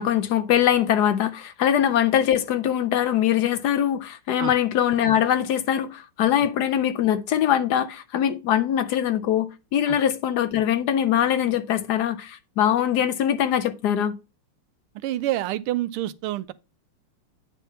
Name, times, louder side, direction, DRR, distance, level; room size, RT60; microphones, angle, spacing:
voice 1, 0.0-14.2, left 10 dB, 70° left, 1.0 m, -22 dB
voice 2, 14.9-16.5, right 14 dB, 85° right, 1.5 m, -28 dB
9.2 x 3.5 x 5.5 m
omnidirectional pair, 2.4 m